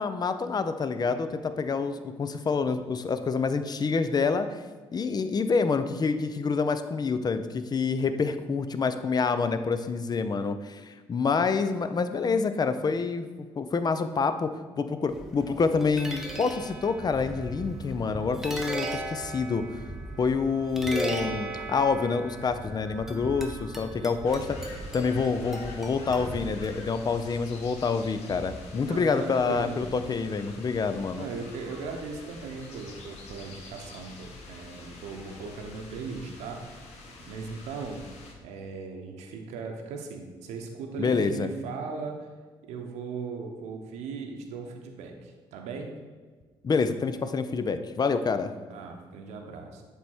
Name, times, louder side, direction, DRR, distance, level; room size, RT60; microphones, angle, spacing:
voice 1, 0.0-4.6 4.9-14.5 14.8-19.6 20.2-31.3 41.0-41.5 46.6-48.5, left 4 dB, 35° left, 10 dB, 0.5 m, -27 dB
sound 1, 15.1-27.2, right 1 dB, 5° right, 1.0 m, -37 dB
sound 2, 24.2-38.3, left 2 dB, 70° left, 1.0 m, -46 dB
voice 2, 28.8-29.9 31.1-36.6 37.3-38.1 38.4-42.3 42.7-45.9 48.7-49.8, right 4 dB, 75° right, 3 dB, 0.8 m, -38 dB
7.4 x 3.5 x 4.3 m, 1.4 s
hypercardioid pair, 55°, 12 cm